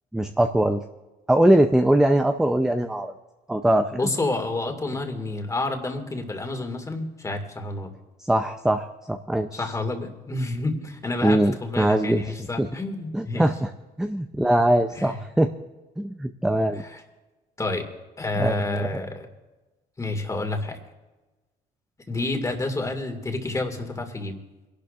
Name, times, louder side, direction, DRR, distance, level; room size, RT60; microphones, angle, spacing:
voice 1, 0.1-0.8 1.3-3.1 3.5-4.1 8.2-9.8 11.2-12.7 13.1-13.7 14.0-15.5 16.0-16.8 18.4-19.0, right 1 dB, 5° right, 7 dB, 0.5 m, -22 dB
voice 2, 3.9-7.9 9.5-13.4 15.0-15.1 17.6-17.9 18.2-19.3 20.0-20.8 22.1-24.3, left 2 dB, 20° left, 4 dB, 2.1 m, -29 dB
28.5 x 12.0 x 2.5 m, 1.2 s
cardioid pair, 110°, 17 cm